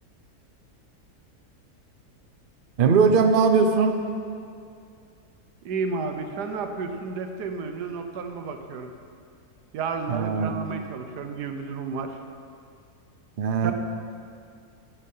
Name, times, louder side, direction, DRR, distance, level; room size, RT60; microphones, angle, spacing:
voice 1, 2.8-4.0 10.1-10.6 13.4-13.7, right 5 dB, 45° right, 6 dB, 0.7 m, -20 dB
voice 2, 5.6-8.9 9.7-12.2 13.6-13.7, right 4 dB, 85° right, 6 dB, 1.4 m, -32 dB
9.9 x 9.7 x 5.6 m, 2.4 s
omnidirectional pair, 1.7 m